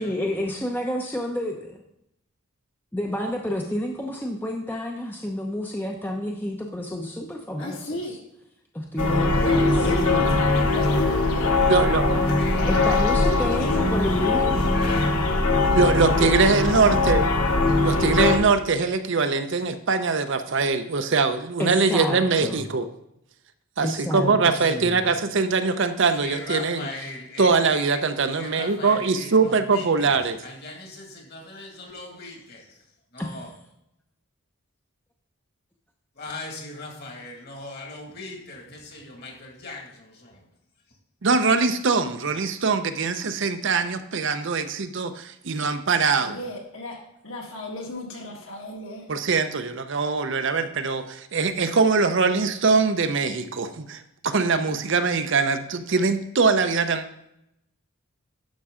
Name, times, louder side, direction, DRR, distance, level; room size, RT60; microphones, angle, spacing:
voice 1, 0.0-1.8 2.9-8.2 8.7-10.3 12.6-14.7 16.2-16.3 21.6-22.7 23.8-25.1 33.2-33.5, left 1 dB, 10° left, 1 dB, 0.6 m, -30 dB
voice 2, 7.6-8.2 9.1-11.6 46.2-49.1, left 2 dB, 65° left, 0 dB, 2.0 m, -34 dB
sound 1, 9.0-18.4, left 3 dB, 90° left, 1.2 m, -21 dB
voice 3, 10.5-11.6 12.4-12.7 14.7-15.0 26.2-27.5 28.4-29.3 29.7-29.8 30.6-32.6 33.1-33.4 36.2-39.8, left 3 dB, 45° left, 1 dB, 2.0 m, -38 dB
voice 4, 11.7-12.2 15.8-17.3 17.8-22.9 23.8-27.1 27.4-30.4 41.2-46.4 49.1-57.0, right 4 dB, 55° right, 9 dB, 0.6 m, -22 dB
11.5 x 6.0 x 3.7 m, 0.82 s
head